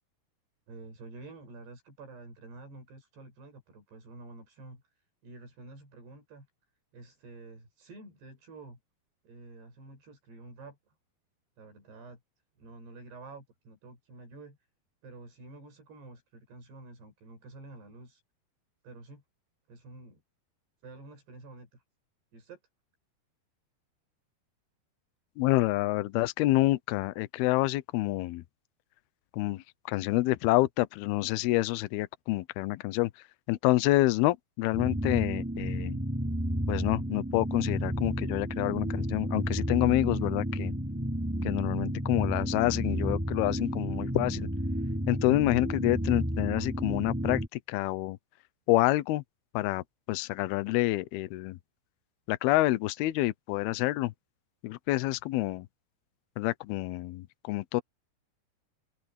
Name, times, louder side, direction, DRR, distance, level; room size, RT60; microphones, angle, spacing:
voice 1, 0.7-6.5 6.9-8.8 9.2-10.9 11.6-12.2 12.6-14.6 15.0-18.2 18.8-19.2 19.7-20.2 20.8-21.8 22.3-22.6, right 2 dB, 80° right, 9.2 m, -49 dB
voice 2, 25.4-28.4 29.3-33.1 33.5-36.0 36.7-40.7 41.4-44.5 45.1-48.2 48.7-49.2 49.5-49.8 50.1-51.6 52.3-54.1 54.6-55.7 56.4-57.8, left 18 dB, 80° left, 2.6 m, -28 dB
sound 1, 34.7-47.5, equal, 5° right, 3.1 m, -31 dB
open air
omnidirectional pair, 4.6 m